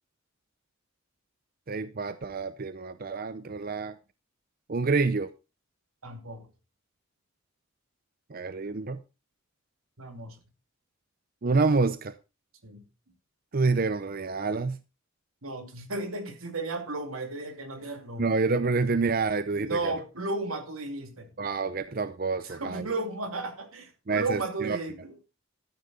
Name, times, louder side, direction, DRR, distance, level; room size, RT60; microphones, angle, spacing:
voice 1, 1.7-4.0 4.7-5.3 8.3-9.0 11.4-12.2 13.5-14.8 18.2-19.9 21.4-22.9 24.1-24.8, right 4 dB, 45° right, 0.6 m, -28 dB
voice 2, 6.0-6.5 8.3-8.4 10.0-10.4 12.6-12.8 15.4-18.3 19.6-21.3 22.4-25.2, right 2 dB, 90° right, 2.7 m, -34 dB
13.0 x 10.0 x 4.1 m
head